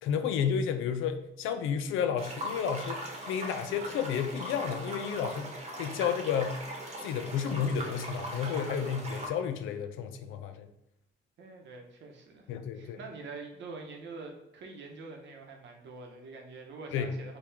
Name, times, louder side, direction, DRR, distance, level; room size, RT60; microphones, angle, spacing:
voice 1, 0.0-6.6 7.0-10.7 12.5-13.0 16.9-17.2, left 7 dB, 85° left, 8 dB, 0.4 m, -32 dB
sound 1, 2.2-9.3, right 1 dB, 35° right, 1.0 m, -40 dB
voice 2, 11.4-17.4, right 3 dB, 65° right, 2 dB, 0.8 m, -45 dB
4.5 x 2.3 x 3.4 m, 0.82 s
cardioid pair, 90°, 20 cm